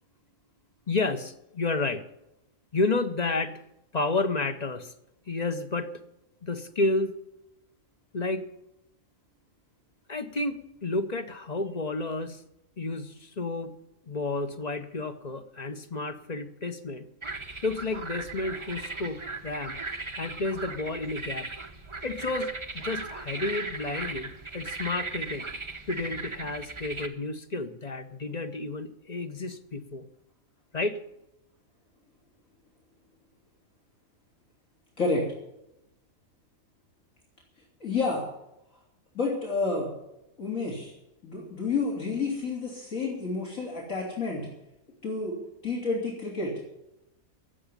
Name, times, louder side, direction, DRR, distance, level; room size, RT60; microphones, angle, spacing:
voice 1, 0.9-2.0 2.7-3.6 3.9-4.9 5.3-5.9 6.4-7.1 8.1-8.4 10.1-12.4 12.8-13.7 14.1-17.1 17.6-19.8 20.2-21.5 22.0-25.5 25.9-30.1 30.7-31.0, left 3 dB, 30° left, 7 dB, 1.0 m, -31 dB
sound 1, 17.2-27.1, right 3 dB, 25° right, 1.0 m, -37 dB
voice 2, 37.8-38.2 39.1-39.9 40.4-40.9 41.2-44.5 45.0-45.4 45.6-46.5, left 3 dB, 65° left, -3 dB, 3.7 m, -29 dB
14.5 x 7.8 x 10.0 m, 0.86 s
omnidirectional pair, 1.5 m